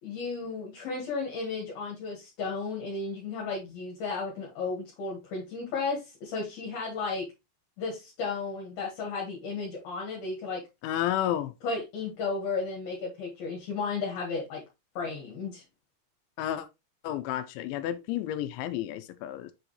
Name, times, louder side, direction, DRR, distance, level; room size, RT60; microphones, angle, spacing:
voice 1, 0.0-7.3 7.8-10.6 11.6-14.6 14.9-15.6, left 4 dB, 60° left, 3.2 m, -34 dB
voice 2, 10.8-11.5 16.4-16.7 17.0-19.5, left 12 dB, 85° left, 3.0 m, -31 dB
7.3 x 5.0 x 3.1 m
omnidirectional pair, 5.4 m